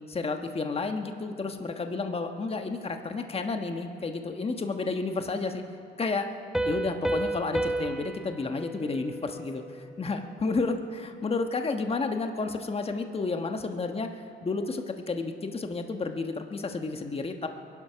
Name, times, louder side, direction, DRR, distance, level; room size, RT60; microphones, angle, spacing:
voice 1, 0.1-5.6 6.0-6.3 6.6-17.5, left 3 dB, 30° left, 5 dB, 1.3 m, -31 dB
Piano, 6.5-10.0, right 2 dB, 5° right, 0.8 m, -32 dB
22.5 x 11.0 x 5.8 m, 2.8 s
cardioid pair, 90°, 20 cm